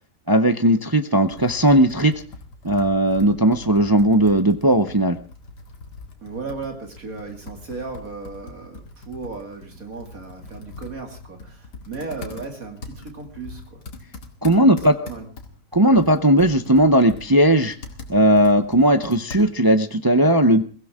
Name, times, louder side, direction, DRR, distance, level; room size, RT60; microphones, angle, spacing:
voice 1, 0.3-2.1 2.6-5.2 14.4-14.9 15.7-17.8 18.1-20.6, right 1 dB, 30° right, 9 dB, 0.4 m, -17 dB
Computer keyboard, 1.3-19.8, left 3 dB, 75° left, 2.7 m, -42 dB
voice 2, 6.2-13.8 14.4-15.3, right 4 dB, 55° right, 4 dB, 3.0 m, -36 dB
22.5 x 16.0 x 3.6 m, 0.36 s
omnidirectional pair, 1.8 m